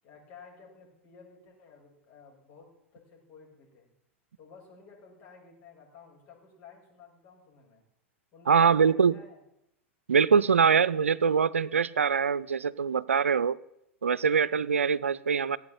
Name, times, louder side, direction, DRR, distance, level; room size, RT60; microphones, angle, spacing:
voice 1, 0.0-2.7 2.9-3.9 4.4-7.8 8.3-9.4, left 5 dB, 50° left, -1 dB, 7.1 m, -53 dB
voice 2, 8.5-9.2 10.1-13.6 14.0-15.6, right 6 dB, 85° right, 20 dB, 0.5 m, -23 dB
16.0 x 8.4 x 8.9 m, 0.82 s
hypercardioid pair, 90°, 7 cm